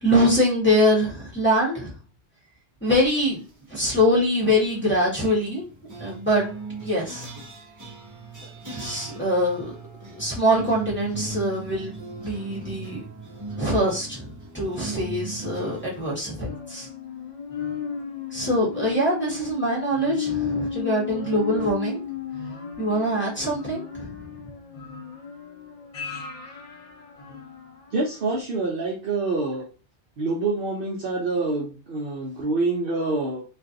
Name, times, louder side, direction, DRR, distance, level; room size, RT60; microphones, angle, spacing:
voice 1, 0.0-1.9 2.8-3.4 3.7-5.6 6.0-6.5 6.8-7.3 8.7-9.7 10.1-13.0 13.6-16.9 18.3-22.0 22.8-24.1, equal, 10° left, -6 dB, 0.9 m, -23 dB
sound 1, 3.0-3.5 4.5-16.1, right 3 dB, 20° right, 0.5 m, -39 dB
sound 2, 16.5-27.9 28.4-28.5, left 7 dB, 60° left, 0.4 m, -34 dB
voice 2, 27.9-29.7 30.2-33.4, right 3 dB, 60° right, -2 dB, 0.7 m, -26 dB
2.5 x 2.3 x 2.5 m, 0.36 s
omnidirectional pair, 1.2 m